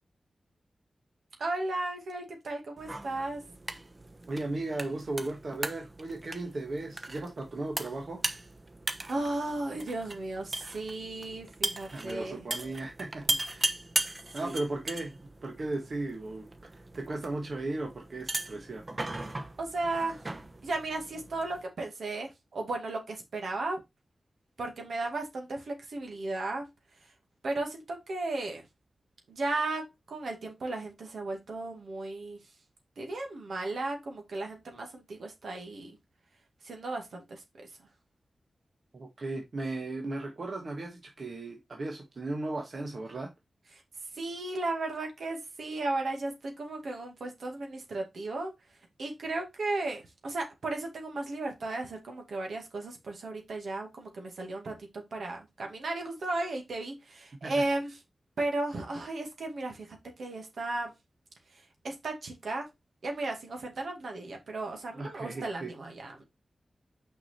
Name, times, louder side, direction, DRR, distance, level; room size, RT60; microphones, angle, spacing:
voice 1, 1.4-3.4 9.1-12.4 14.4-14.6 19.6-20.2 20.6-23.8 24.6-26.7 27.4-28.6 29.3-32.4 33.0-36.0 36.6-37.7 44.1-48.5 49.0-57.9 58.4-60.9 61.5-62.7 63.0-66.2, right 2 dB, 80° right, 2.1 m, -35 dB
sound 1, 2.8-21.6, right 2 dB, 40° right, 1.1 m, -38 dB
voice 2, 4.3-8.2 11.9-13.7 14.3-18.8 38.9-43.3 57.4-57.6 64.9-65.7, right 2 dB, 65° right, 1.4 m, -36 dB
6.0 x 4.9 x 4.3 m
cardioid pair, 55°, 0 cm